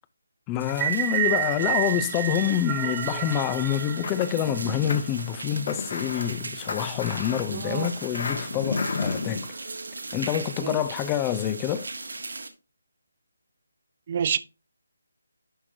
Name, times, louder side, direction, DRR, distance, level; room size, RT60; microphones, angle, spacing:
voice 1, 0.5-9.5 10.1-11.9, left 11 dB, 15° left, 0.5 m, -27 dB
sound 1, 0.6-12.5, right 3 dB, 70° right, 1.5 m, -38 dB
sound 2, 0.7-5.0, right 11 dB, 20° right, 1.1 m, -29 dB
sound 3, 3.9-9.5, left 4 dB, 55° left, 1.7 m, -33 dB
voice 2, 7.5-7.9 10.6-10.8 14.1-14.4, right 7 dB, 35° right, 0.6 m, -28 dB
11.0 x 5.9 x 2.7 m
figure-of-eight pair, 155°, 0 cm